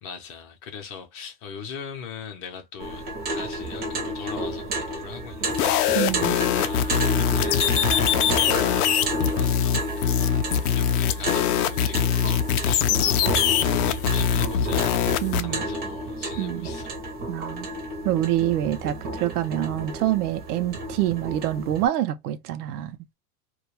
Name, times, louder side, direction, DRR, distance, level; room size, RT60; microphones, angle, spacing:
voice 1, 0.0-17.0, left 7 dB, 30° left, 0.6 m, -40 dB
sound 1, 2.8-21.9, right 1 dB, 20° right, 0.5 m, -31 dB
sound 2, 5.5-15.4, left 10 dB, 80° left, 0.5 m, -23 dB
voice 2, 6.0-6.4 15.2-15.6 16.4-16.7 17.3-17.7 18.0-23.0, right 13 dB, 85° right, 0.6 m, -26 dB
2.3 x 2.1 x 3.0 m
supercardioid pair, 150°, 45 cm